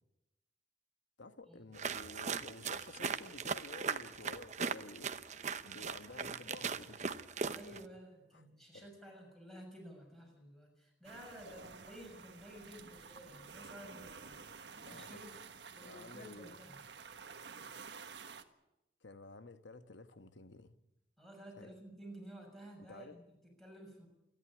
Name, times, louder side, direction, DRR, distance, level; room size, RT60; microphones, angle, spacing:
voice 1, 1.2-7.1 8.7-8.9 11.5-11.7 14.7-15.1 15.8-16.5 19.0-20.8 21.6-21.7 22.8-23.1, left 2 dB, 80° left, 1.2 m, -52 dB
sound 1, 1.7-7.9, right 5 dB, 40° right, 0.8 m, -39 dB
voice 2, 7.4-15.3 15.8-16.8 21.2-24.1, equal, ahead, 6.4 m, -53 dB
sound 2, 11.0-18.4, right 5 dB, 70° right, 1.5 m, -52 dB
28.5 x 11.0 x 9.8 m
head